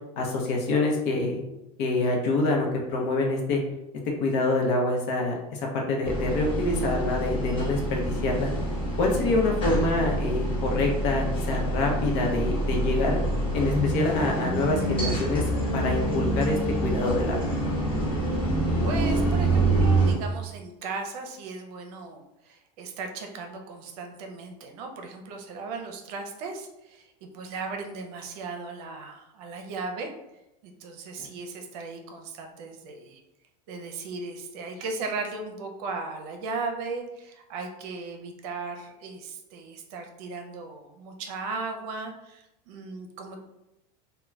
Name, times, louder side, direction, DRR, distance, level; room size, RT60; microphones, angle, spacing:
voice 1, 0.2-1.4 1.8-3.6 4.2-8.5 9.0-13.2 13.5-15.4 15.7-17.5 31.2-31.3, left 2 dB, 55° left, 0 dB, 0.7 m, -26 dB
sound 1, 6.0-20.1, right 1 dB, 25° left, 1.0 m, -26 dB
voice 2, 18.8-30.1 30.6-33.2 33.7-43.4, right 4 dB, 70° right, 4 dB, 0.6 m, -37 dB
2.3 x 2.2 x 3.1 m, 0.91 s
supercardioid pair, 120°, 21 cm